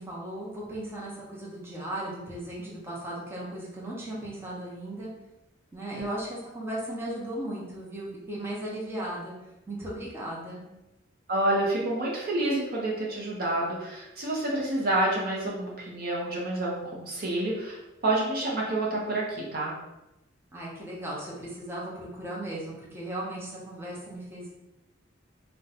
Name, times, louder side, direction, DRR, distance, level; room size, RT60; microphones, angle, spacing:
voice 1, 0.0-5.1 5.7-9.3 9.7-10.6 20.5-24.5, right 1 dB, 10° right, -6 dB, 0.8 m, -36 dB
voice 2, 11.3-19.7, right 1 dB, 50° right, -3 dB, 0.7 m, -28 dB
2.6 x 2.2 x 4.0 m, 0.93 s
head